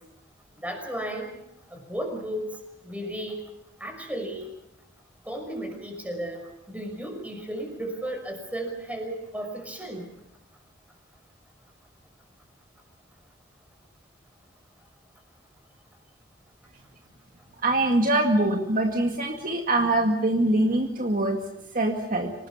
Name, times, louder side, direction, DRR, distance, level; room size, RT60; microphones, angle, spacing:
voice 1, 0.6-1.3 1.7-2.5 2.8-3.4 3.8-4.6 5.3-10.1, right 1 dB, 10° right, 3 dB, 5.8 m, -34 dB
voice 2, 17.6-21.4 21.7-22.3, right 1 dB, 45° right, 2 dB, 2.1 m, -23 dB
26.5 x 19.0 x 7.1 m, 0.81 s
head